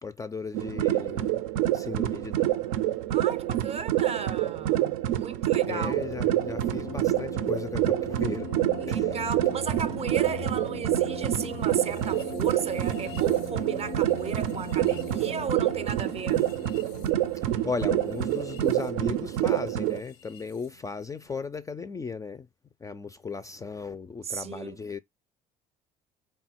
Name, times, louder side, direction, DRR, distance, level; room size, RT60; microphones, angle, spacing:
voice 1, 0.0-1.4 1.7-2.5 5.7-8.5 8.9-9.2 17.6-22.5 22.8-25.0, left 5 dB, 20° left, 0.3 m, -36 dB
sound 1, 0.5-20.0, right 13 dB, 80° right, 0.4 m, -27 dB
voice 2, 3.1-6.0 8.8-16.5 24.2-24.8, right 6 dB, 35° right, 0.6 m, -35 dB
sound 2, 5.7-20.7, left 6 dB, 85° left, 0.7 m, -41 dB
3.5 x 2.3 x 4.3 m
hypercardioid pair, 70°, 18 cm